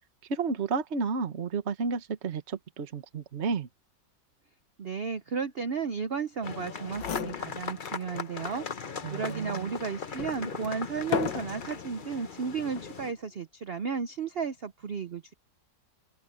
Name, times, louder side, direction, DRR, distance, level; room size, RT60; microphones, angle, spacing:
voice 1, 0.3-3.7 9.0-9.7, right 4 dB, 40° right, 1.5 m, -32 dB
voice 2, 4.8-15.3, right 6 dB, 60° right, 0.6 m, -34 dB
sound 1, 6.4-13.1, left 5 dB, 35° left, 0.9 m, -39 dB
sound 2, 6.6-6.7 6.9-8.1 8.5-8.6 9.3-11.9 12.6-13.0, left 8 dB, 80° left, 1.9 m, -36 dB
open air
omnidirectional pair, 1.9 m